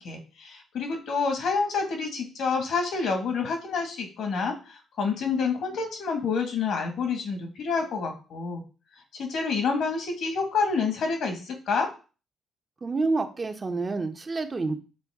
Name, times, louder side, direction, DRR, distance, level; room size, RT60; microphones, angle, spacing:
voice 1, 0.0-8.6 9.1-11.9, left 5 dB, 70° left, 4 dB, 1.9 m, -28 dB
voice 2, 12.8-14.8, right 3 dB, 30° right, 6 dB, 1.0 m, -28 dB
7.7 x 3.8 x 3.7 m, 0.34 s
cardioid pair, 90°, 0 cm